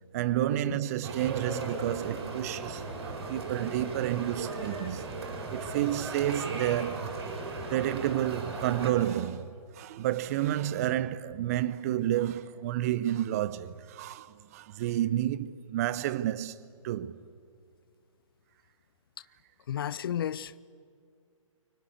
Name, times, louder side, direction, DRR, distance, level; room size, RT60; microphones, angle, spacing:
voice 1, 0.1-2.8 3.3-5.0 5.5-7.1 7.7-17.1, right 12 dB, 30° right, 0.8 m, -30 dB
sound 1, 1.0-8.9, right 3 dB, 45° right, 7.2 m, -37 dB
voice 2, 19.7-20.6, left 10 dB, 45° left, 0.6 m, -33 dB
29.0 x 24.5 x 8.3 m
figure-of-eight pair, 135°, 17 cm